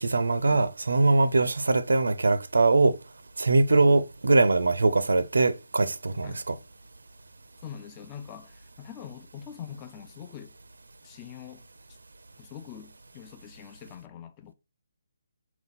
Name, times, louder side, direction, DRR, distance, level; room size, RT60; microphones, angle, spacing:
voice 1, 0.0-3.0 3.4-6.6, right 3 dB, 80° right, 0.5 m, -22 dB
voice 2, 7.6-10.5 11.0-11.6 12.4-14.5, left 9 dB, 25° left, 0.4 m, -44 dB
3.9 x 2.3 x 4.0 m
figure-of-eight pair, 150°, 0 cm